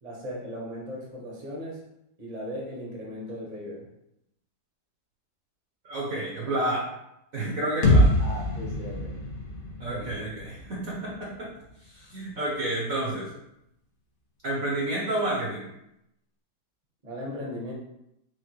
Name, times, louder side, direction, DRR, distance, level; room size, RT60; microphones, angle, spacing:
voice 1, 0.0-1.8 2.2-3.9 8.2-9.2 9.8-10.3 17.0-17.7, equal, 30° right, -3 dB, 0.7 m, -37 dB
voice 2, 5.8-6.9 7.3-8.1 9.8-11.5 11.8-13.3 14.4-15.6, right 1 dB, 55° right, -5 dB, 1.0 m, -30 dB
sound 1, 7.8-11.7, left 1 dB, 80° left, 0.4 m, -25 dB
4.7 x 2.1 x 4.4 m, 0.82 s
omnidirectional pair, 2.2 m